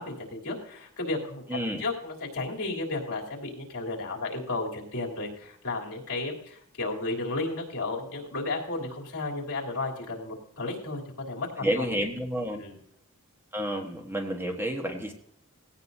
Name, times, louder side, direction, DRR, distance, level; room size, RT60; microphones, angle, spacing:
voice 1, 0.0-11.0 11.3-12.0 12.5-12.8, left 2 dB, 70° left, -2 dB, 3.2 m, -33 dB
voice 2, 1.5-1.8 11.6-12.6 13.5-15.1, equal, 10° right, 2 dB, 1.3 m, -30 dB
18.0 x 17.0 x 2.7 m, 0.69 s
head